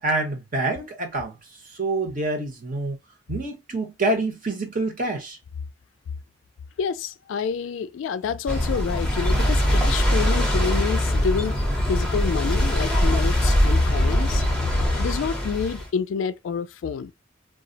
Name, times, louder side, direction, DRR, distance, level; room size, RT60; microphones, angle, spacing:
voice 1, 0.0-1.3 1.8-3.0 3.3-5.4, right 2 dB, 45° right, 0.9 m, -26 dB
voice 2, 6.8-11.6 11.9-14.4 15.0-17.1, left 6 dB, 75° left, 0.3 m, -28 dB
sound 1, 8.5-15.9, equal, 5° left, 0.7 m, -22 dB
2.3 x 2.0 x 3.8 m
head